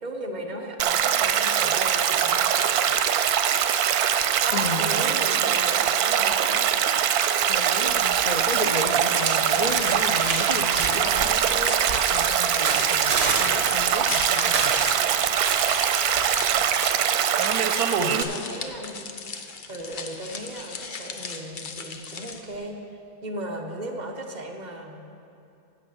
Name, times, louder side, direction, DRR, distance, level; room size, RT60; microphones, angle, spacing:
voice 1, 0.0-2.5 4.4-6.7 18.0-19.1 19.7-22.8 23.2-25.0, right 1 dB, 35° right, 2 dB, 0.9 m, -36 dB
Stream, 0.8-18.2, right 9 dB, 85° right, 1.1 m, -22 dB
voice 2, 4.5-5.0 7.5-14.7 18.0-18.4, left 3 dB, 85° left, 3 dB, 0.3 m, -33 dB
sound 1, 7.4-8.3 8.5-16.4, right 3 dB, 55° right, 1.6 m, -32 dB
sound 2, 9.2-22.6, left 5 dB, 45° left, 0.7 m, -38 dB
10.5 x 7.0 x 7.9 m, 2.7 s
omnidirectional pair, 1.5 m